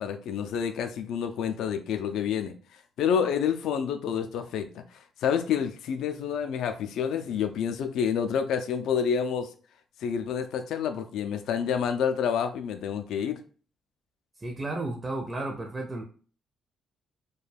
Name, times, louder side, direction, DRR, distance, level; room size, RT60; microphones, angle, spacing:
voice 1, 0.0-2.5 3.0-4.7 4.9-9.5 10.0-13.4, left 7 dB, 80° left, 8 dB, 0.3 m, -28 dB
voice 2, 14.4-16.0, right 2 dB, 20° right, 2 dB, 0.4 m, -33 dB
2.3 x 2.2 x 3.3 m, 0.41 s
cardioid pair, 90°, 0 cm